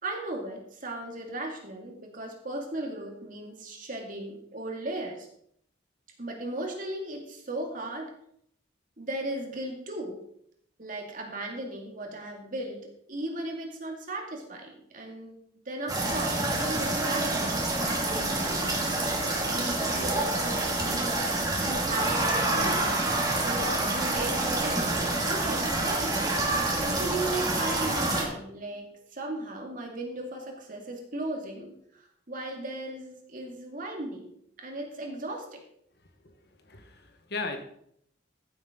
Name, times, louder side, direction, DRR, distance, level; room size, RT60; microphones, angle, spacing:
voice 1, 0.0-5.3 6.2-8.1 9.0-10.2 10.8-15.4 15.7-18.7 19.1-21.2 21.6-23.1 23.4-26.2 26.8-34.3 34.6-35.6, right 2 dB, 50° right, 1 dB, 2.5 m, -36 dB
sound 1, 15.9-28.2, right 2 dB, 20° right, 2.5 m, -27 dB
voice 2, 36.7-37.6, left 3 dB, 60° left, 6 dB, 1.5 m, -36 dB
14.5 x 7.8 x 3.9 m, 0.70 s
head